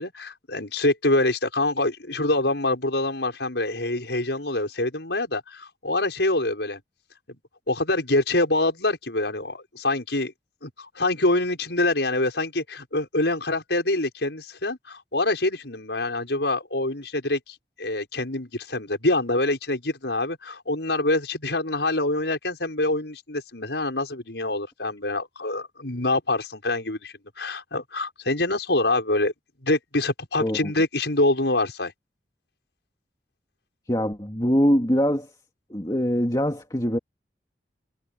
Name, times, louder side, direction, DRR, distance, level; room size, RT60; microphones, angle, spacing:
voice 1, 0.0-6.8 7.3-7.4 7.7-10.3 10.6-29.3 29.6-31.9, left 2 dB, 80° left, 5.9 m, -25 dB
voice 2, 30.4-30.7 33.9-35.3 35.7-37.0, equal, 20° left, 2.5 m, -23 dB
head